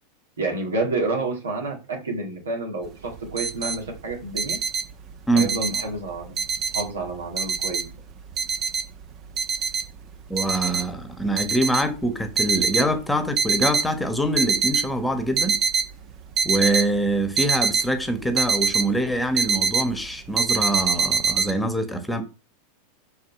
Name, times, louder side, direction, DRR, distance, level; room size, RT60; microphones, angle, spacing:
voice 1, 0.4-4.6 5.3-6.4 6.7-8.0 10.7-10.8, right 2 dB, 85° right, 2.4 m, -29 dB
sound 1, 2.8-2.9 3.1-3.8 4.1-6.0 6.4-7.1 7.4-9.0 9.4-9.9 10.4-10.9 11.3-12.9 13.3-13.9 14.2-14.9 15.2-15.9 16.4-18.9 19.1-19.9 20.4-21.5, right 5 dB, 45° right, 1.0 m, -24 dB
voice 2, 10.3-15.6 16.4-22.2, right 1 dB, 5° left, 1.3 m, -24 dB
5.5 x 4.8 x 4.7 m
hypercardioid pair, 95°, 0 cm